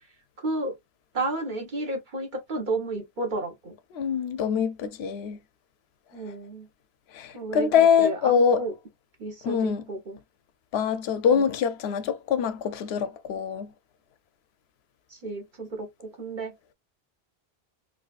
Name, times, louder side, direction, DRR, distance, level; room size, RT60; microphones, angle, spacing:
voice 1, 0.4-0.7 1.1-3.7 6.1-6.7 7.3-8.7 9.2-10.2 11.3-11.4 15.1-16.5, right 2 dB, 50° right, 1.2 m, -32 dB
voice 2, 3.9-5.4 7.1-8.6 9.4-9.8 10.7-13.7, left 7 dB, 80° left, 0.8 m, -24 dB
3.9 x 2.6 x 2.4 m
omnidirectional pair, 1.0 m